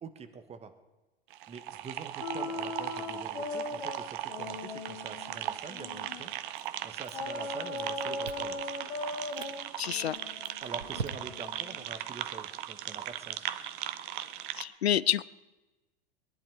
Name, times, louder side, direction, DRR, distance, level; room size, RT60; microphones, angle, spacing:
voice 1, 0.0-0.7 1.5-6.3 6.8-8.6 10.6-13.5, right 5 dB, 20° right, 9 dB, 1.2 m, -45 dB
sound 1, 1.3-14.6, right 12 dB, 55° right, 0.9 m, -38 dB
sound 2, 2.2-6.4 7.1-11.9, left 3 dB, 60° left, 1.5 m, -39 dB
Chewing mastication, 6.6-7.5 7.8-8.6 9.1-9.6 10.1-11.6, right 5 dB, 85° right, 0.9 m, -42 dB
voice 2, 9.8-10.2 14.6-15.2, left 10 dB, 80° left, 20 dB, 0.5 m, -28 dB
22.0 x 10.5 x 4.7 m, 1.1 s
figure-of-eight pair, 90°, 31 cm